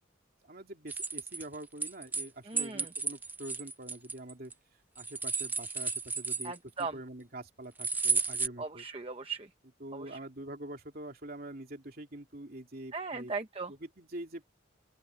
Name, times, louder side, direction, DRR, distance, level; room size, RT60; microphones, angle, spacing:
voice 1, 0.4-4.5 4.9-8.8 9.8-13.3 13.7-14.4, right 1 dB, 50° right, 3.1 m, -45 dB
sound 1, 0.9-2.3 2.6-4.5 5.0-6.8 7.8-8.5, right 4 dB, 10° right, 0.4 m, -33 dB
voice 2, 2.4-2.9 6.4-7.0 8.6-9.5 9.9-10.2 12.9-13.7, right 4 dB, 30° right, 0.8 m, -38 dB
open air
head